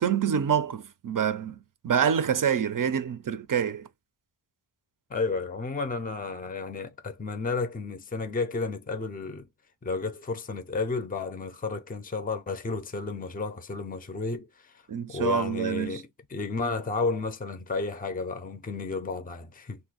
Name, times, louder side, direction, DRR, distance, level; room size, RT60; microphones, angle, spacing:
voice 1, 0.0-1.6 1.8-3.9 14.9-16.0, right 8 dB, 45° right, 0.5 m, -26 dB
voice 2, 5.1-9.5 9.8-14.7 15.1-19.8, left 4 dB, 20° left, 0.5 m, -32 dB
2.6 x 2.2 x 3.9 m
wide cardioid pair, 75°, 48 cm